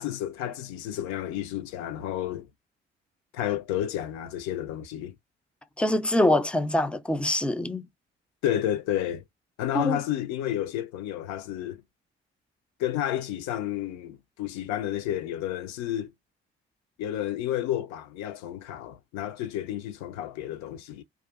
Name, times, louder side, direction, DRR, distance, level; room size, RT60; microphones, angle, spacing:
voice 1, 0.0-2.5 3.3-5.1 8.4-9.2 9.6-11.8 12.8-16.1 17.0-21.0, left 12 dB, 65° left, 0.5 m, -31 dB
voice 2, 5.8-7.8 9.7-10.0, left 1 dB, 5° left, 0.4 m, -24 dB
2.4 x 2.3 x 2.4 m
figure-of-eight pair, 40°, 30 cm